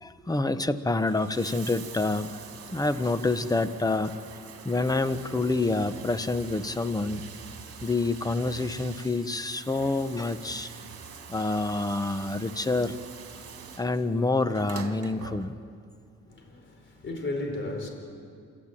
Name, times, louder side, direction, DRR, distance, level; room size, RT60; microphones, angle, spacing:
voice 1, 0.0-2.4 2.7-4.2 4.6-7.2 7.8-10.7 11.3-13.0 13.8-15.6, left 2 dB, 10° left, 11 dB, 1.1 m, -27 dB
Bathtub (filling or washing), 1.0-15.9 17.0-17.1, right 6 dB, 50° right, 2.6 m, -44 dB
voice 2, 16.2-17.9, left 2 dB, 40° left, 4 dB, 4.7 m, -34 dB
29.0 x 14.0 x 9.0 m, 2.4 s
cardioid pair, 90°, 30 cm